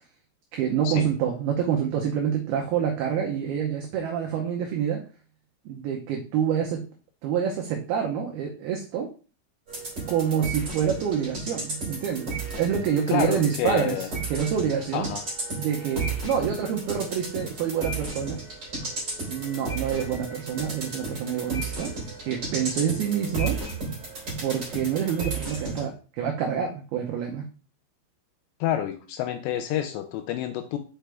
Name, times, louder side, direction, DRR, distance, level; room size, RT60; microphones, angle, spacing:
voice 1, 0.5-5.1 5.7-6.8 7.2-9.1 10.1-15.1 15.6-18.4 19.3-21.9 22.2-23.6 24.4-27.5, right 8 dB, 80° right, 1 dB, 2.2 m, -27 dB
sound 1, 9.7-25.8, right 3 dB, 30° right, 2.6 m, -33 dB
voice 2, 13.1-14.1 14.9-15.2 28.6-30.8, left 11 dB, 85° left, 7 dB, 2.6 m, -28 dB
6.3 x 5.6 x 3.4 m, 0.36 s
omnidirectional pair, 5.5 m